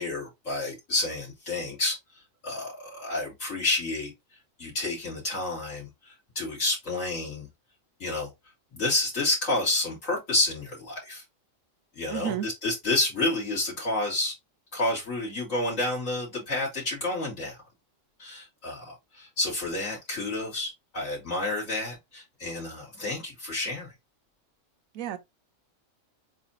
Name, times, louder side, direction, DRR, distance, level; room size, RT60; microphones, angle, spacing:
voice 1, 0.0-1.9 2.4-4.1 4.6-5.9 6.3-7.5 8.0-8.3 8.7-11.2 12.0-14.3 14.7-17.6 18.2-23.9, left 2 dB, 75° left, 3.1 m, -29 dB
voice 2, 12.1-12.5 24.9-25.2, right 10 dB, 85° right, 1.2 m, -31 dB
7.8 x 2.8 x 2.4 m
omnidirectional pair, 1.4 m